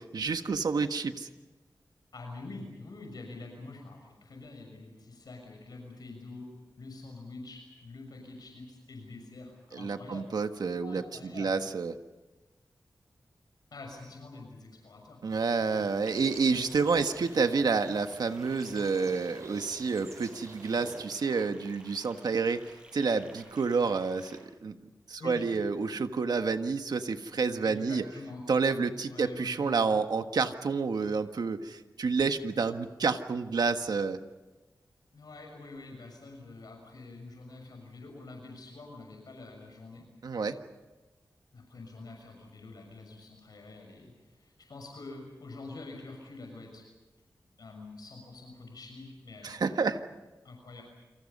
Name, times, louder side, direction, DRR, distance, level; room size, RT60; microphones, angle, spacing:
voice 1, 0.1-1.3 9.7-11.9 15.2-24.7 25.1-28.0 28.5-34.2 40.2-40.6 49.4-50.0, right 4 dB, 85° right, 7 dB, 1.5 m, -29 dB
voice 2, 2.1-6.5 6.8-10.4 10.8-11.7 13.7-15.2 25.2-25.5 27.6-28.4 29.0-29.7 35.1-40.0 41.5-46.8 47.6-49.7 50.4-50.8, left 3 dB, 80° left, 2 dB, 6.4 m, -46 dB
sound 1, 15.3-21.0, right 2 dB, 50° right, 5.2 m, -49 dB
sound 2, 16.0-24.4, right 1 dB, 15° right, 7.8 m, -56 dB
28.5 x 28.0 x 5.5 m, 1.1 s
wide cardioid pair, 95°, 7 cm